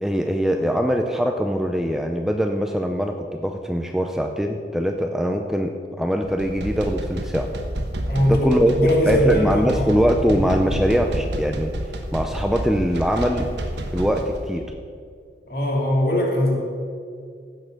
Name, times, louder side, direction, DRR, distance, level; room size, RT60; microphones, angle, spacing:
voice 1, 0.0-7.5 8.2-8.7 9.1-11.7 12.1-13.5 13.9-14.6, equal, ahead, 4 dB, 0.5 m, -22 dB
sound 1, 6.2-14.4, right 1 dB, 75° right, 1.2 m, -29 dB
voice 2, 8.1-8.5 8.7-10.4 15.5-16.5, equal, 55° left, -2 dB, 2.8 m, -21 dB
15.5 x 6.5 x 6.6 m, 2.3 s
head